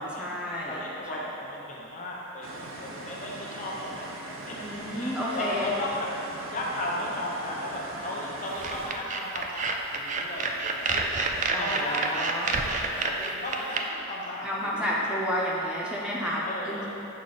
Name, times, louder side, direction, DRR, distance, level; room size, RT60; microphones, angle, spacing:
voice 1, 0.0-0.8 1.1-1.2 4.6-5.7 11.5-12.5 14.4-16.9, equal, 5° right, -6 dB, 0.7 m, -31 dB
voice 2, 0.7-4.1 4.5-4.6 4.9-6.1 6.5-11.1 11.5-15.1 16.4-16.9, left 1 dB, 40° left, -3 dB, 0.9 m, -35 dB
sound 1, 2.4-8.9, right 1 dB, 70° right, 0.7 m, -40 dB
sound 2, 8.6-13.8, right 3 dB, 35° right, 0.4 m, -29 dB
6.5 x 5.1 x 4.0 m, 2.9 s
head